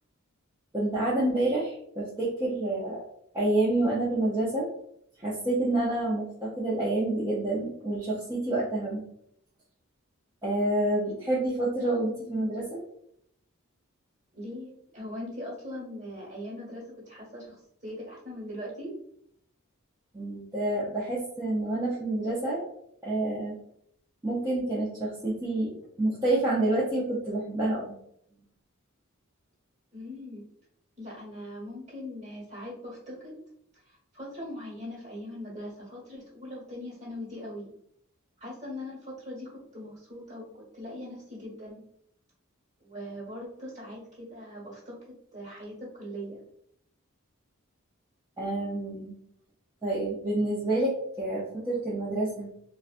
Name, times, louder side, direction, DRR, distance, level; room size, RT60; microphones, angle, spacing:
voice 1, 0.7-3.0 3.3-4.7 5.2-9.0 10.4-12.8 20.1-22.7 23.0-23.6 24.2-27.9 48.4-49.1 49.8-52.5, right 2 dB, 15° right, -7 dB, 0.5 m, -28 dB
voice 2, 14.3-19.0 29.9-30.4 31.0-33.4 33.7-37.7 38.4-41.8 42.8-46.4, left 1 dB, 35° right, -4 dB, 1.4 m, -41 dB
4.0 x 2.1 x 2.4 m, 0.71 s
head